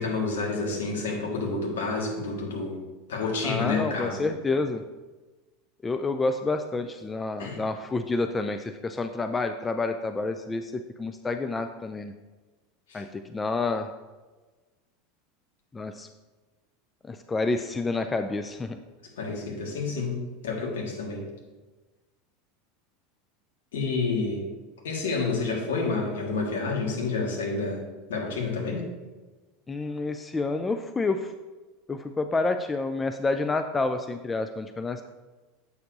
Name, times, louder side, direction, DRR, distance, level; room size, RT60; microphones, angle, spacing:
voice 1, 0.0-2.8 3.1-4.2 7.4-7.6 12.9-13.0 19.2-21.3 23.7-24.5 24.8-27.8 28.1-28.8, left 3 dB, 65° left, -1 dB, 1.7 m, -29 dB
voice 2, 3.4-4.8 5.8-12.1 12.9-13.9 15.7-16.1 17.0-18.8 29.7-31.3 31.9-35.0, left 3 dB, 15° left, 7 dB, 0.4 m, -29 dB
8.1 x 6.5 x 2.7 m, 1.2 s
figure-of-eight pair, 80°, 0 cm